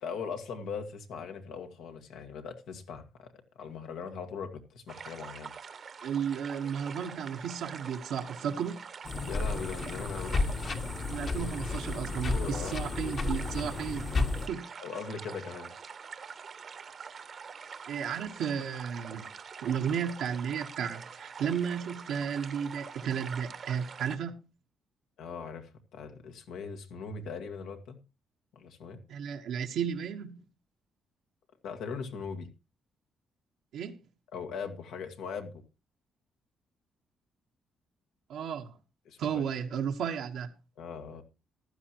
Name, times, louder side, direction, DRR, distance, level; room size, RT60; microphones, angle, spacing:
voice 1, 0.0-5.5 9.2-10.4 12.3-12.8 14.8-15.7 25.2-28.0 28.5-29.0 31.6-32.5 34.3-35.6 39.0-39.4 40.8-41.2, left 5 dB, 85° left, 1.7 m, -40 dB
sound 1, 4.9-24.2, right 6 dB, 50° right, 1.0 m, -45 dB
voice 2, 6.0-8.8 11.1-14.1 14.5-14.7 17.9-19.3 19.6-24.4 29.1-30.4 33.7-34.0 38.3-38.8 39.2-40.5, right 7 dB, 80° right, 1.2 m, -33 dB
sound 2, 9.0-14.5, left 3 dB, 45° left, 1.3 m, -32 dB
15.0 x 11.5 x 3.0 m
cardioid pair, 90°, 0 cm